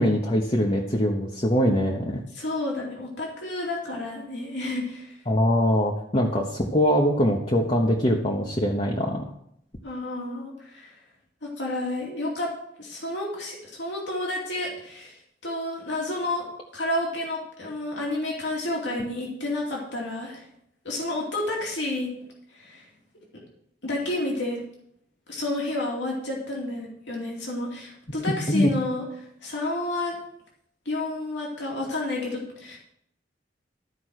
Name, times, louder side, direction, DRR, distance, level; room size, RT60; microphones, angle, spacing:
voice 1, 0.0-2.2 5.3-9.3 28.5-29.0, equal, 35° left, 0 dB, 1.1 m, -23 dB
voice 2, 2.3-5.1 9.8-10.9 11.6-12.5 12.8-15.2 15.4-16.5 16.7-20.4 20.8-22.1 22.5-22.9 23.8-24.6 25.3-29.0 29.4-30.1 30.9-32.8, left 2 dB, 85° left, -3 dB, 2.6 m, -30 dB
13.0 x 5.1 x 6.4 m, 0.73 s
head